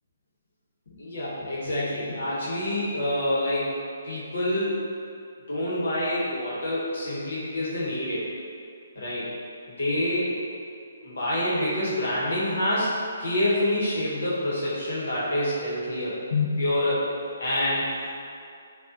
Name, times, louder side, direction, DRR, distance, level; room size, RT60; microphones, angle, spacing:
voice 1, 0.9-3.8 4.0-4.8 5.5-8.3 8.9-9.3 9.8-10.3 11.0-12.9 13.2-17.1 17.4-17.8, left 1 dB, 75° left, -7 dB, 1.0 m, -27 dB
5.3 x 2.3 x 2.6 m, 2.4 s
hypercardioid pair, 155°, 0 cm